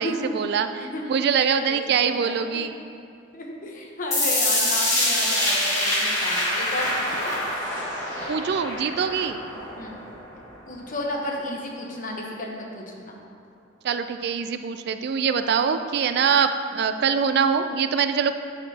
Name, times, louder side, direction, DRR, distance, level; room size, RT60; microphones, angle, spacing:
voice 1, 0.0-2.7 8.3-9.4 13.8-18.3, right 6 dB, 55° right, 10 dB, 0.3 m, -24 dB
voice 2, 1.5-2.6 3.3-7.4 9.8-10.0 10.7-13.2, left 1 dB, 45° left, -1 dB, 1.0 m, -33 dB
sound 1, 4.1-10.1, left 1 dB, 15° left, 1.8 m, -25 dB
10.5 x 6.5 x 2.8 m, 2.4 s
head